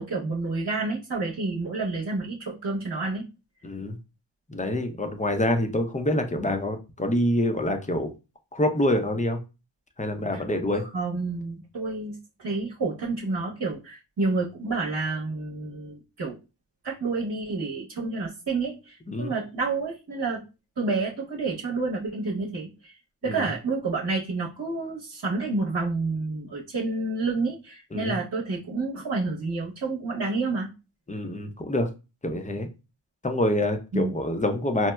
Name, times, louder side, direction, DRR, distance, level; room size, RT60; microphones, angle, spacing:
voice 1, 0.0-3.2 10.3-10.4 10.9-16.4 16.8-20.4 20.8-22.9 23.2-30.7 33.9-34.1, right 3 dB, 50° right, -3 dB, 0.9 m, -29 dB
voice 2, 3.6-4.0 4.5-8.1 8.5-9.4 10.0-10.8 19.1-19.3 23.3-23.5 27.9-28.2 31.1-31.9 32.2-32.7 33.2-34.9, left 1 dB, 15° left, 6 dB, 0.5 m, -26 dB
4.2 x 2.0 x 2.2 m, 0.29 s
cardioid pair, 45°, 48 cm